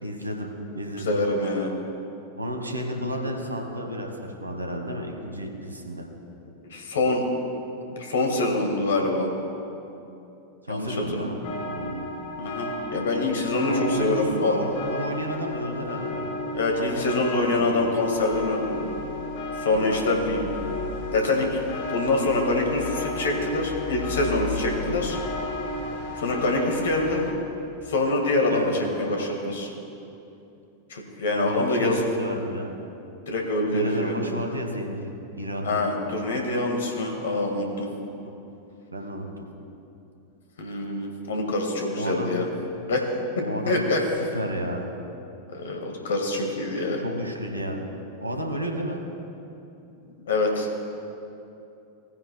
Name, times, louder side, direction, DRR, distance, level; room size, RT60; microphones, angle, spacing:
voice 1, 0.0-0.5 0.7-1.2 2.4-6.0 10.6-12.0 13.6-16.3 16.8-17.8 19.7-20.2 20.6-20.8 24.7-25.0 28.5-28.7 31.2-32.7 33.7-35.1 35.4-35.8 38.9-39.5 41.9-42.3 43.4-43.8 44.3-44.9 47.0-47.9 48.2-49.0, equal, 85° right, 2 dB, 1.3 m, -32 dB
voice 2, 1.0-1.7 6.7-7.2 7.9-9.3 10.7-11.3 12.4-14.6 16.5-19.0 19.6-20.4 21.1-21.6 21.9-25.2 26.2-27.2 27.9-29.7 30.9-32.0 33.3-34.1 35.6-37.9 40.6-42.5 42.9-43.0 43.7-44.0 45.5-47.0 50.3-50.7, left 2 dB, 65° left, 2 dB, 1.7 m, -25 dB
sound 1, 11.4-27.3, left 2 dB, 45° left, 1.5 m, -33 dB
18.0 x 9.4 x 2.2 m, 2.8 s
figure-of-eight pair, 90°, 0 cm